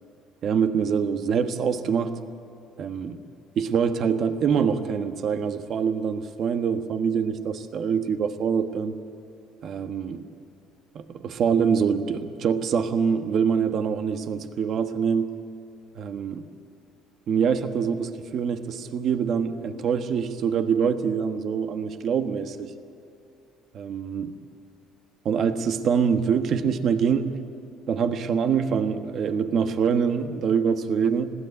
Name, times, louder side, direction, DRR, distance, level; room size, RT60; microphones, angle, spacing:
voice 1, 0.4-2.2 2.8-3.2 3.6-8.9 9.6-10.3 10.9-15.4 15.9-16.4 17.3-22.7 23.7-24.3 25.2-27.3 27.9-31.3, right 6 dB, 55° right, 8 dB, 1.3 m, -25 dB
21.0 x 16.0 x 9.4 m, 2.8 s
cardioid pair, 110°, 0 cm